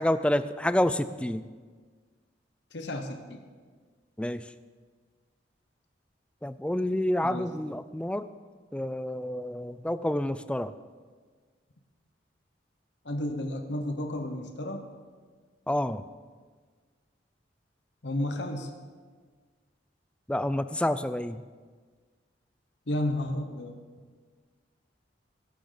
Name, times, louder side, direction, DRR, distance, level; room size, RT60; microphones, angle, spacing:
voice 1, 0.0-1.4 4.2-4.5 6.4-8.3 8.7-10.7 15.7-16.0 20.3-21.4, left 1 dB, 5° left, 13 dB, 0.3 m, -28 dB
voice 2, 2.7-3.4 7.2-7.5 13.0-14.9 18.0-18.7 22.9-23.8, left 1 dB, 65° left, 5 dB, 1.1 m, -32 dB
20.5 x 11.5 x 4.0 m, 1.5 s
head